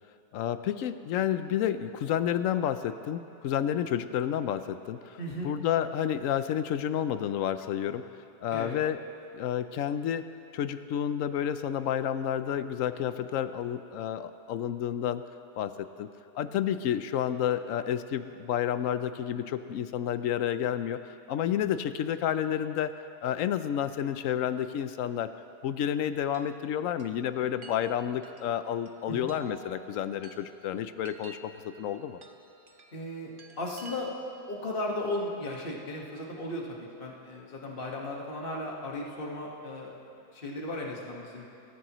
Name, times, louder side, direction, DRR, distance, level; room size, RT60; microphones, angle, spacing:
voice 1, 0.3-5.2 5.4-8.1 8.4-9.0 9.3-10.3 10.5-15.2 15.6-15.7 16.0-16.1 16.3-22.9 23.2-25.3 25.6-32.2, left 10 dB, 65° left, 11 dB, 0.9 m, -30 dB
voice 2, 5.2-5.5 8.5-8.8 29.1-29.3 32.9-33.3 33.6-34.1 34.5-40.0 40.3-41.5, left 1 dB, 35° left, -2 dB, 1.8 m, -36 dB
Chime, 26.3-34.5, right 4 dB, 40° right, 0.9 m, -53 dB
23.5 x 14.0 x 3.1 m, 2.7 s
omnidirectional pair, 1.7 m